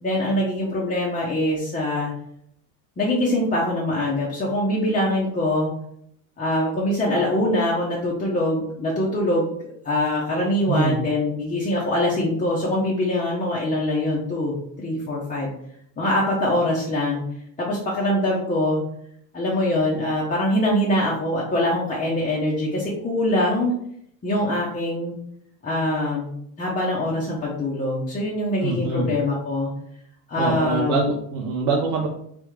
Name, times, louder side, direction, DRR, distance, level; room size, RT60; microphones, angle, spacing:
voice 1, 0.0-2.1 3.0-5.7 6.4-15.5 16.0-17.2 17.6-18.8 19.3-23.7 24.2-25.1 25.6-26.3 26.6-29.7 30.3-31.1, left 1 dB, 20° left, -5 dB, 0.8 m, -23 dB
voice 2, 10.7-11.0 28.6-29.1 30.4-32.1, right 4 dB, 85° right, 0 dB, 0.8 m, -24 dB
3.6 x 3.4 x 3.2 m, 0.70 s
supercardioid pair, 135°, 44 cm